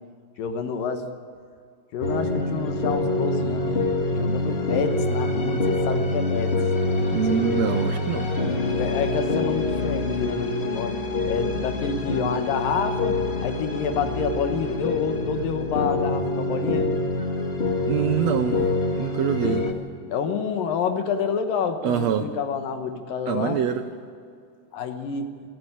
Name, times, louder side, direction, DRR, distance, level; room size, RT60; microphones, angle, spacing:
voice 1, 0.4-1.1 1.9-6.5 7.1-7.6 8.8-11.0 11.3-16.9 20.1-23.6 24.7-25.3, left 5 dB, 75° left, 7 dB, 2.9 m, -28 dB
sound 1, 2.0-19.7, left 2 dB, 50° left, 0.7 m, -25 dB
voice 2, 7.1-8.3 17.9-18.6 19.0-19.7 21.8-22.2 23.3-23.8, right 8 dB, 75° right, 8 dB, 1.6 m, -24 dB
28.0 x 9.3 x 9.9 m, 2.3 s
omnidirectional pair, 4.0 m